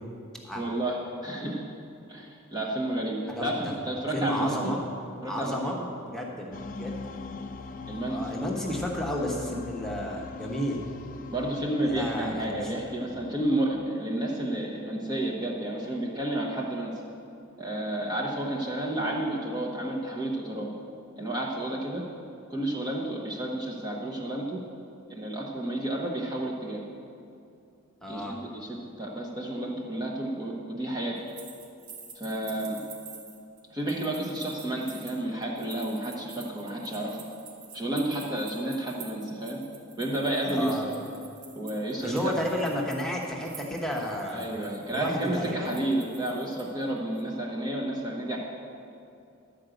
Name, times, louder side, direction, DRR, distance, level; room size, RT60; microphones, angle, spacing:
voice 1, 0.5-1.6 2.1-4.8 5.2-5.8 7.9-8.3 11.3-16.9 17.6-20.7 21.2-22.0 22.5-24.6 25.1-26.8 28.1-31.2 32.1-32.8 33.7-37.2 37.7-39.6 40.0-41.0 41.5-42.4 44.3-48.4, right 1 dB, 20° right, -4 dB, 0.9 m, -31 dB
voice 2, 4.1-4.8 5.2-6.9 8.1-10.8 11.8-12.7 28.0-28.4 40.4-40.9 42.0-44.4 44.9-45.8, equal, 5° left, -2 dB, 1.2 m, -32 dB
sound 1, 6.5-14.7, left 4 dB, 40° left, 0.5 m, -41 dB
sound 2, 31.2-46.8 47.2-47.3, right 6 dB, 85° right, 1.8 m, -48 dB
11.5 x 5.0 x 7.8 m, 2.6 s
head